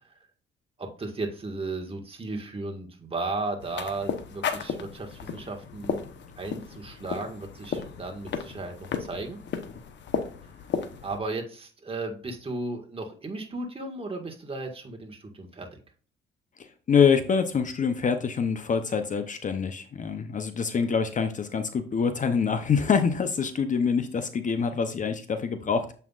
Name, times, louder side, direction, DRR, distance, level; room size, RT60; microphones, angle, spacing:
voice 1, 0.8-6.0 6.4-9.4 11.0-15.8, right 2 dB, 30° right, 2 dB, 1.7 m, -35 dB
sound 1, 3.6-11.2, left 7 dB, 65° left, 1.0 m, -34 dB
voice 2, 16.9-25.9, left 6 dB, 40° left, 9 dB, 0.7 m, -25 dB
7.4 x 5.6 x 2.4 m, 0.39 s
cardioid pair, 90°, 20 cm